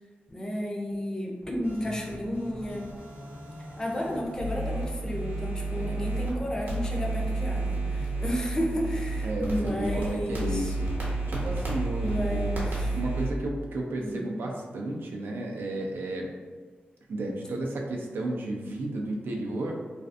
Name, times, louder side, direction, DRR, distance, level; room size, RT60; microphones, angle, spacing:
voice 1, 0.3-2.9 3.8-10.7 12.0-12.9 14.0-14.3, equal, 20° left, -1 dB, 0.4 m, -32 dB
sound 1, 1.4-13.1, left 1 dB, 55° left, 0.8 m, -45 dB
sound 2, 1.6-6.3 6.7-13.3, right 2 dB, 65° right, 0.8 m, -32 dB
voice 2, 5.8-6.1 9.2-10.9 11.3-12.6 12.9-16.3 17.1-19.8, right 1 dB, 85° right, 0 dB, 0.4 m, -33 dB
2.5 x 2.4 x 2.4 m, 1.5 s
wide cardioid pair, 130°, 4 cm